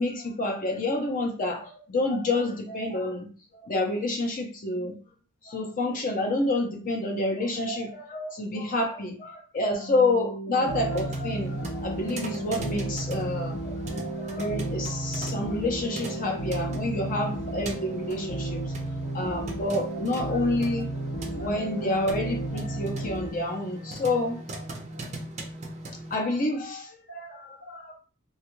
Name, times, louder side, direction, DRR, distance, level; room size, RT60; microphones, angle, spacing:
voice 1, 0.0-5.0 5.4-18.7 19.1-20.9 21.2-24.7 25.9-27.9, left 2 dB, 40° left, 2 dB, 0.5 m, -29 dB
sound 1, 9.7-23.3, right 2 dB, 75° left, 0.7 m, -34 dB
sound 2, 10.6-26.2, right 1 dB, 30° right, 0.5 m, -39 dB
3.3 x 2.3 x 2.9 m, 0.38 s
head